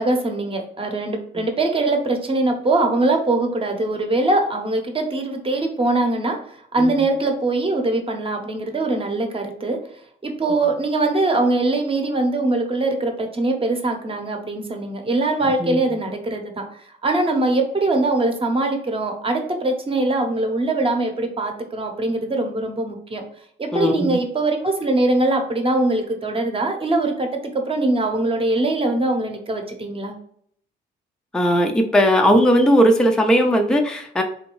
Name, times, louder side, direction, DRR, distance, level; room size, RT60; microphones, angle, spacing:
voice 1, 0.0-6.4 6.7-9.8 10.2-16.6 17.0-23.2 23.6-30.1, right 2 dB, 25° right, 4 dB, 0.8 m, -22 dB
voice 2, 23.7-24.2 31.3-34.2, equal, 5° left, 3 dB, 0.4 m, -17 dB
3.4 x 2.6 x 3.0 m, 0.63 s
cardioid pair, 90°, 20 cm